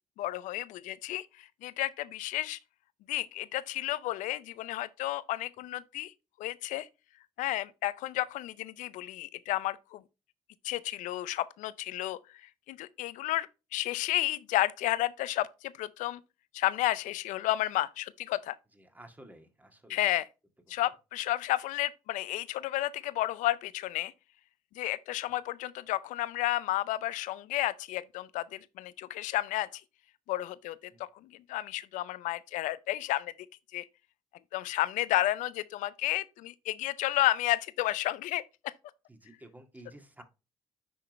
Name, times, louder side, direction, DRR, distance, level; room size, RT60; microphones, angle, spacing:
voice 1, 0.2-2.6 3.1-6.1 6.4-6.9 7.4-10.0 10.6-12.2 12.7-16.2 16.5-18.6 19.9-20.3 20.7-24.1 24.8-29.8 30.3-33.3 33.7-33.9 34.5-38.4, left 15 dB, 75° left, 0.5 m, -32 dB
voice 2, 18.7-20.1 30.9-31.0 39.1-40.2, right 1 dB, 10° right, 1.9 m, -52 dB
10.0 x 3.8 x 3.1 m
hypercardioid pair, 55°, 13 cm